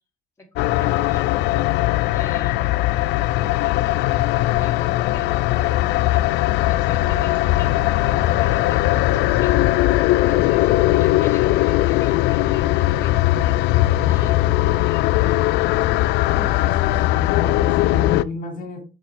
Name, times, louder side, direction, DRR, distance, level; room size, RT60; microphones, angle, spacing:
voice 1, 0.4-1.5 2.1-5.5 5.8-7.7 8.1-9.6 10.2-16.3 16.8-17.1, left 2 dB, 15° left, -1 dB, 2.5 m, -42 dB
sound 1, 0.6-18.2, left 16 dB, 85° left, 0.4 m, -19 dB
voice 2, 16.3-18.8, left 3 dB, 55° left, 2 dB, 2.2 m, -33 dB
6.2 x 4.7 x 3.5 m, 0.31 s
cardioid pair, 110°, 17 cm